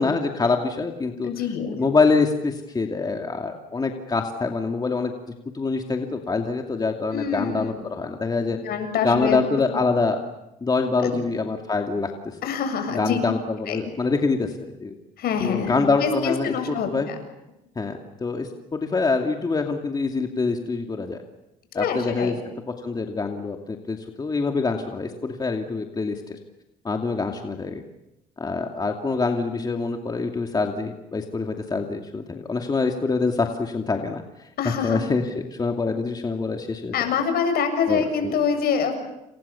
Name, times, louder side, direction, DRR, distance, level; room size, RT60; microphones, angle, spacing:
voice 1, 0.0-1.3 1.7-5.1 5.5-8.6 9.0-10.2 10.6-12.4 12.9-15.0 15.4-16.5 16.9-17.1 17.8-21.2 21.7-22.4 22.8-26.4 26.8-27.8 28.4-34.2 34.6-37.0 37.9-38.3, left 4 dB, 25° left, 3 dB, 2.6 m, -25 dB
voice 2, 1.2-1.8 7.1-7.9 8.5-9.4 11.0-11.2 12.4-13.2 13.7-13.8 15.2-17.1 21.7-22.3 34.6-35.0 36.9-38.9, left 6 dB, 65° left, 7 dB, 7.3 m, -25 dB
29.0 x 28.5 x 7.1 m, 0.90 s
cardioid pair, 110°, 17 cm